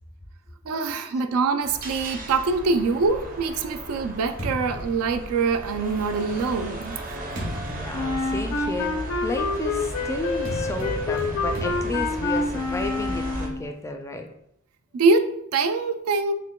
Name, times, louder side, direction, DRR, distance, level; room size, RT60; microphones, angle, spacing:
voice 1, 0.7-7.0 14.9-16.3, right 4 dB, 85° right, 0.4 m, -24 dB
sound 1, 1.6-13.5, right 1 dB, 40° right, 0.7 m, -36 dB
sound 2, 3.1-5.9 6.6-13.6, equal, 65° right, 1.1 m, -38 dB
voice 2, 7.4-14.3, left 2 dB, 15° left, 0.3 m, -33 dB
Wind instrument woodwind instrument, 7.9-13.7, left 3 dB, 70° left, 0.5 m, -27 dB
6.4 x 2.2 x 2.2 m
head